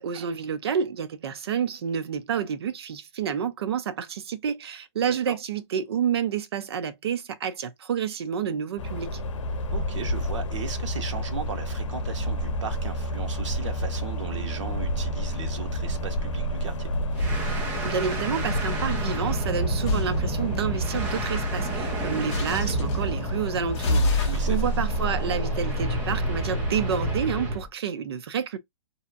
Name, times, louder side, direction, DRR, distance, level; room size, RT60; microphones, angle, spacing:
voice 1, 0.0-9.2 17.8-28.6, right 7 dB, 55° right, 0.6 m, -29 dB
voice 2, 5.0-5.4 9.7-16.9 24.2-24.7, right 5 dB, 80° right, 1.0 m, -37 dB
sound 1, 8.8-27.2, equal, 80° left, 0.7 m, -30 dB
sound 2, 17.2-27.7, right 2 dB, 10° right, 0.3 m, -31 dB
sound 3, 19.9-20.1 22.3-23.0 23.7-26.4, left 1 dB, 20° left, 0.8 m, -27 dB
2.7 x 2.2 x 2.5 m
hypercardioid pair, 170°, 15 cm